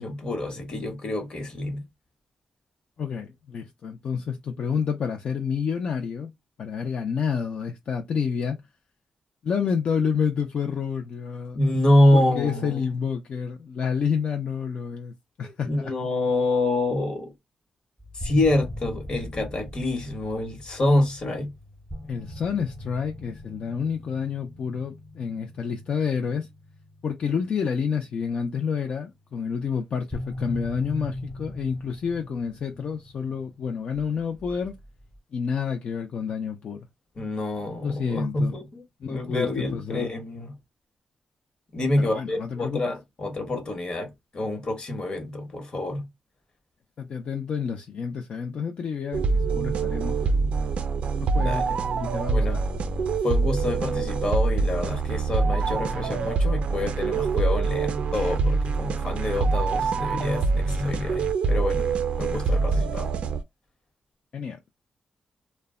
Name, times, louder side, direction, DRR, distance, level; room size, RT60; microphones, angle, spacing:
voice 1, 0.0-1.8 11.5-12.8 15.4-17.3 18.1-21.5 37.2-40.5 41.7-46.1 51.3-51.7 52.3-52.6 53.2-61.9 62.2-63.1, left 1 dB, 45° left, 1.0 m, -26 dB
voice 2, 3.0-6.3 6.6-8.6 9.4-11.6 12.1-15.9 22.1-26.5 27.0-34.8 35.3-36.9 37.8-38.5 39.0-40.1 42.0-42.8 47.0-50.8 51.3-51.6 51.9-52.6 64.3-64.6, left 6 dB, 65° left, 0.4 m, -29 dB
sound 1, 18.0-28.1 30.1-35.2, left 1 dB, 10° left, 0.6 m, -40 dB
sound 2, 49.1-63.4, right 4 dB, 70° right, 0.4 m, -25 dB
2.1 x 2.0 x 3.5 m
cardioid pair, 105°, 2 cm